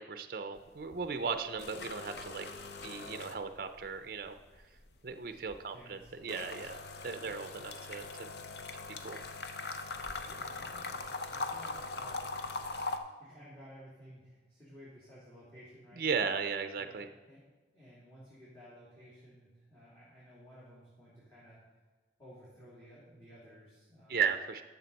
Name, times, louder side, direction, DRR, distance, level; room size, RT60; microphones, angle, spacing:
voice 1, 0.0-2.5 2.8-4.4 5.0-8.3 9.0-9.2 16.0-17.1 24.1-24.6, right 5 dB, 50° right, 8 dB, 0.5 m, -36 dB
sound 1, 0.6-1.0 1.3-3.9 4.2-13.0, left 3 dB, 65° left, 0.7 m, -41 dB
voice 2, 5.7-6.7 7.2-7.4 10.1-12.3 13.2-16.1 16.8-17.4 17.7-21.6 22.2-24.2, equal, 10° left, -10 dB, 2.9 m, -55 dB
12.0 x 7.0 x 4.1 m, 1.3 s
head